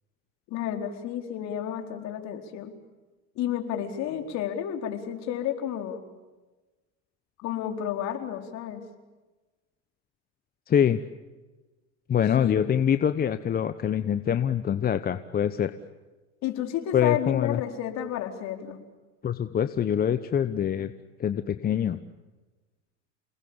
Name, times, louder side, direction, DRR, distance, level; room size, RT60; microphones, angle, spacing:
voice 1, 0.5-2.7 3.4-6.0 7.4-8.8 12.4-12.7 16.4-18.8, left 10 dB, 50° left, 5 dB, 4.3 m, -31 dB
voice 2, 10.7-11.0 12.1-15.7 16.9-17.6 19.2-20.9 21.2-22.0, left 9 dB, 25° left, 11 dB, 1.1 m, -24 dB
29.0 x 20.0 x 8.9 m, 1.2 s
supercardioid pair, 115°, 34 cm